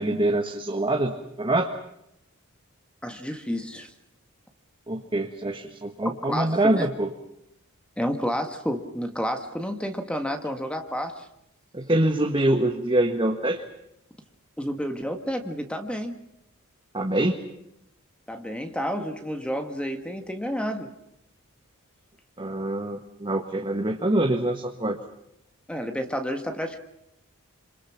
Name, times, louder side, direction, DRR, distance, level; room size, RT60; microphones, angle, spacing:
voice 1, 0.0-1.7 4.9-7.1 11.7-13.6 16.9-17.4 22.4-25.0, right 1 dB, 25° right, 3 dB, 1.6 m, -25 dB
voice 2, 3.0-3.9 6.2-6.9 8.0-11.3 14.6-16.2 18.3-20.9 25.7-26.8, equal, 5° left, 5 dB, 1.6 m, -30 dB
27.0 x 26.5 x 5.9 m, 0.79 s
head